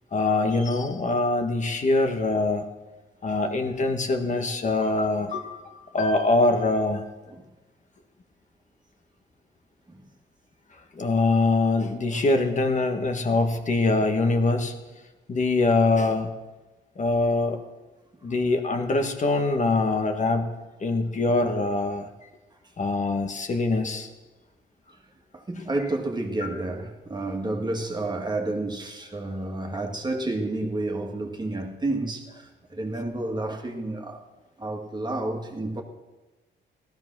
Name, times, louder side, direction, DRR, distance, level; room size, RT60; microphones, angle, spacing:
voice 1, 0.1-2.7 3.2-5.6 5.9-7.0 10.9-14.7 15.3-16.3 17.0-17.6 18.2-20.5 20.8-22.1 22.8-24.1, left 2 dB, 40° left, 1.7 m, -23 dB
voice 2, 25.3-34.2 34.6-35.8, right 2 dB, 20° right, 2.1 m, -30 dB
16.5 x 13.5 x 6.2 m
cardioid pair, 90°, 20 cm